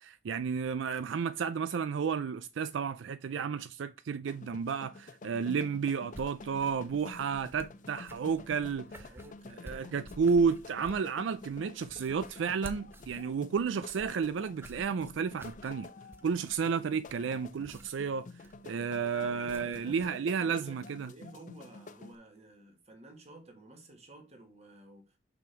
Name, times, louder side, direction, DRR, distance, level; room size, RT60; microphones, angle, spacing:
voice 1, 0.0-9.1 9.6-15.9 16.2-18.3 18.6-21.1, right 6 dB, 75° right, 0.4 m, -32 dB
sound 1, 4.3-22.2, left 3 dB, 45° left, 0.5 m, -50 dB
sound 2, 6.0-20.1, right 1 dB, 15° right, 0.7 m, -53 dB
voice 2, 8.5-10.4 19.1-25.2, right 2 dB, 35° right, 1.8 m, -53 dB
6.1 x 5.2 x 4.4 m
head